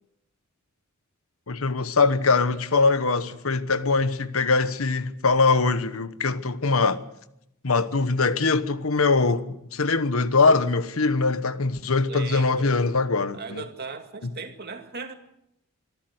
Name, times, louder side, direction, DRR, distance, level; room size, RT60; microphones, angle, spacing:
voice 1, 1.5-7.0 7.6-9.4 9.7-13.6 14.2-14.3, left 4 dB, 80° left, 1.1 m, -22 dB
voice 2, 12.1-12.7 13.3-15.1, right 4 dB, 50° right, 2.2 m, -37 dB
24.5 x 14.0 x 8.0 m
head